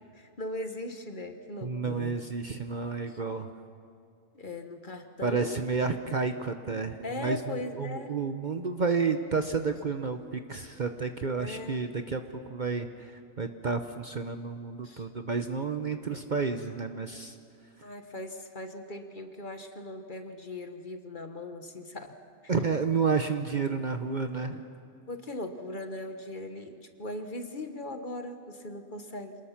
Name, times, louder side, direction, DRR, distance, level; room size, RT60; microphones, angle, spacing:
voice 1, 0.1-2.2 3.1-3.2 4.3-5.7 7.0-8.2 11.4-11.9 14.8-15.1 16.1-16.2 17.8-22.1 22.4-22.5 25.1-29.4, left 2 dB, 40° left, 6 dB, 1.4 m, -39 dB
voice 2, 1.6-3.5 5.2-12.2 12.5-12.9 13.4-17.4 22.5-24.6, right 5 dB, 40° right, 7 dB, 0.8 m, -30 dB
27.0 x 20.0 x 5.9 m, 2.4 s
omnidirectional pair, 1.3 m